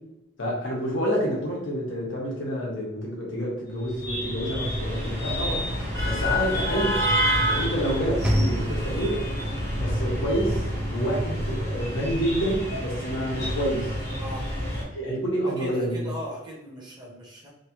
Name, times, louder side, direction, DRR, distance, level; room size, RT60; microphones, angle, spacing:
voice 1, 0.4-5.7 6.0-7.0 7.4-9.2 9.8-10.6 10.9-13.9 14.9-16.1, equal, 85° left, -3 dB, 1.1 m, -28 dB
sound 1, 3.8-14.8, equal, 50° left, 1.4 m, -28 dB
Sliding door / Slam, 4.8-11.8, equal, 5° right, 0.4 m, -34 dB
voice 2, 14.2-14.5 15.4-17.5, equal, 25° right, -4 dB, 0.9 m, -37 dB
3.0 x 2.7 x 2.9 m, 0.89 s
head